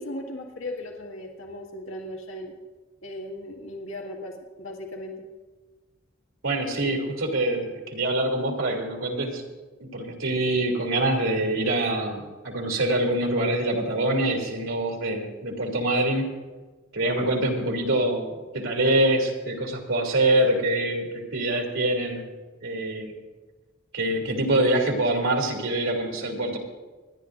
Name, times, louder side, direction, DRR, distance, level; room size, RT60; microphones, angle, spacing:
voice 1, 0.0-2.5 3.0-5.2, left 1 dB, 80° left, 0 dB, 2.0 m, -37 dB
voice 2, 6.4-9.4 9.8-16.3 16.9-22.3 22.6-23.1 23.9-26.6, right 1 dB, 85° right, 0 dB, 2.9 m, -25 dB
26.5 x 11.0 x 2.6 m, 1.3 s
head